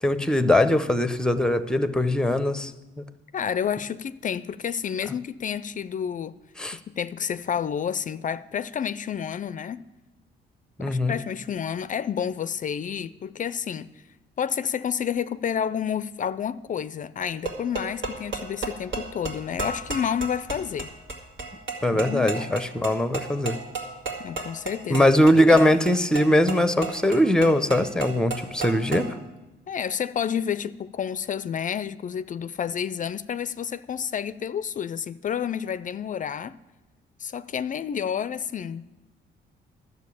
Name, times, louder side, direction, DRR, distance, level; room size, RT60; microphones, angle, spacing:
voice 1, 0.0-2.7 6.6-6.8 10.8-11.2 21.8-23.6 24.9-29.1, left 1 dB, 5° left, 0.7 m, -21 dB
voice 2, 3.3-6.4 6.7-9.8 10.8-13.9 14.4-20.9 21.9-22.6 24.2-25.1 25.5-25.8 29.7-36.6 37.2-38.9, left 8 dB, 40° left, 0.4 m, -30 dB
sound 1, 17.2-29.1, right 4 dB, 70° right, 2.1 m, -34 dB
11.5 x 6.9 x 8.4 m
cardioid pair, 90°, 20 cm